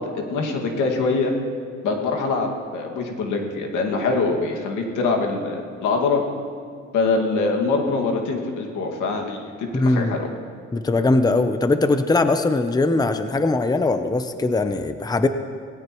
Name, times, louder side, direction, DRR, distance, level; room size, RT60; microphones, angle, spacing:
voice 1, 0.1-1.3 1.8-6.2 6.9-10.3, left 3 dB, 85° left, 2 dB, 2.1 m, -24 dB
voice 2, 9.7-10.1 10.7-15.3, left 2 dB, 15° left, 9 dB, 0.7 m, -20 dB
18.5 x 17.5 x 3.1 m, 2.1 s
cardioid pair, 90°, 30 cm